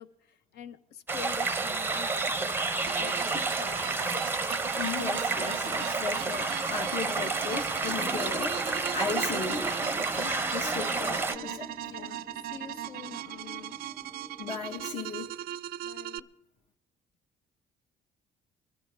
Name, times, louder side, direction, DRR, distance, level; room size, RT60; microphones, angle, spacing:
voice 1, 0.0-4.3 10.9-11.6 11.9-12.2 12.5-13.8 15.8-16.3, left 8 dB, 75° left, 11 dB, 0.8 m, -46 dB
sound 1, 1.1-11.4, right 3 dB, 10° right, 0.6 m, -30 dB
sound 2, 2.9-16.2, right 13 dB, 65° right, 0.4 m, -39 dB
voice 2, 4.7-11.7 14.4-15.3, left 5 dB, 50° left, -1 dB, 1.2 m, -36 dB
sound 3, 7.8-15.1, right 1 dB, 5° left, 1.4 m, -47 dB
22.5 x 12.5 x 3.3 m, 0.88 s
cardioid pair, 110°, 17 cm